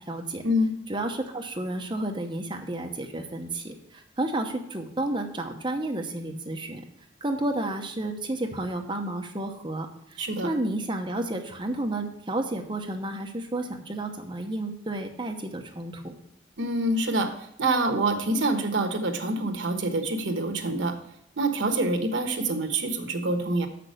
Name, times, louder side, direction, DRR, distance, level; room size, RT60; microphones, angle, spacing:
voice 1, 0.0-0.4 0.9-6.8 7.2-16.2, right 1 dB, 25° right, 3 dB, 0.8 m, -31 dB
voice 2, 10.2-10.5 16.6-21.0 21.4-23.7, right 2 dB, 75° right, 6 dB, 1.1 m, -26 dB
7.2 x 6.0 x 6.5 m, 0.75 s
head